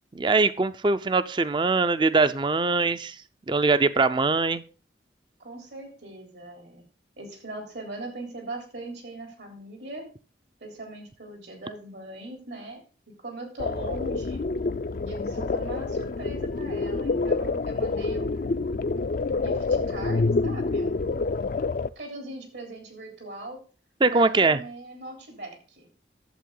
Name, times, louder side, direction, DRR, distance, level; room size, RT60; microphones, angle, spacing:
voice 1, 0.1-3.2 3.5-4.6 24.0-24.6, right 3 dB, 25° right, 14 dB, 0.5 m, -22 dB
voice 2, 5.4-6.9 7.2-10.1 10.6-12.8 13.1-14.5 15.0-18.8 19.4-21.2 22.0-23.6 24.1-25.9, right 2 dB, 80° right, 3 dB, 3.7 m, -40 dB
sound 1, 13.6-21.9, left 3 dB, 50° left, 0.4 m, -27 dB
11.5 x 7.8 x 3.8 m, 0.37 s
head